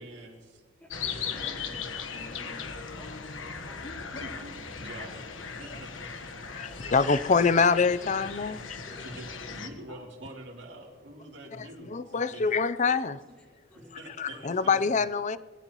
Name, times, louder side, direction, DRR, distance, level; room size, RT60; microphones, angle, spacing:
voice 1, 0.0-0.6 4.2-5.3 5.6-6.3 9.0-12.6 13.7-15.0, right 1 dB, 65° right, -2 dB, 3.1 m, -46 dB
voice 2, 0.8-1.8 2.1-2.6 3.0-3.4 3.7-4.2 5.0-5.1 8.0-8.2 8.9-9.0 12.4-12.5 13.0-13.1 13.7-14.0 14.3-14.4, equal, 10° left, -8 dB, 4.2 m, -50 dB
sound 1, 0.9-9.7, left 5 dB, 85° left, 1.3 m, -38 dB
voice 3, 3.8-4.2 6.5-8.6 11.9-13.2 14.2-15.4, left 5 dB, 40° left, 15 dB, 0.5 m, -25 dB
21.0 x 15.5 x 3.0 m, 1.4 s
head